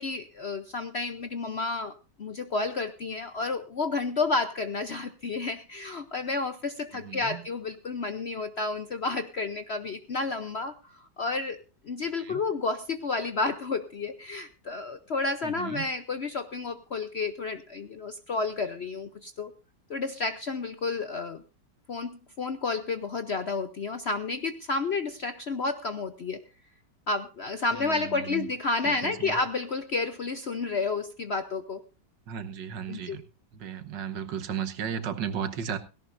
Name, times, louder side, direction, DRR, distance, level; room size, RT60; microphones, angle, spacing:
voice 1, 0.0-19.5 19.9-21.4 21.9-26.4 27.1-31.8 32.9-33.2, left 3 dB, 55° left, 0.7 m, -31 dB
voice 2, 6.9-7.4 12.2-12.4 15.4-15.9 27.7-28.5 28.8-29.4 32.3-33.2 33.5-35.8, right 8 dB, 75° right, 1.8 m, -35 dB
17.5 x 17.0 x 2.6 m
omnidirectional pair, 2.0 m